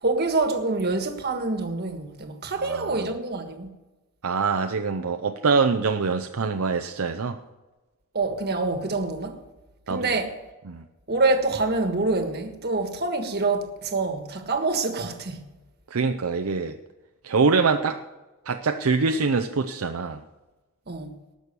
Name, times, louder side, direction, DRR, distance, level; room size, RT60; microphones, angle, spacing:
voice 1, 0.0-3.7 8.1-9.4 9.9-10.4 11.1-15.4 20.9-21.1, right 3 dB, 45° right, 1.5 m, -26 dB
voice 2, 2.6-3.1 4.2-7.4 9.9-10.2 10.7-10.8 15.9-16.8 17.2-18.0 18.5-20.2, right 4 dB, 70° right, 0.6 m, -24 dB
19.0 x 6.3 x 6.8 m
head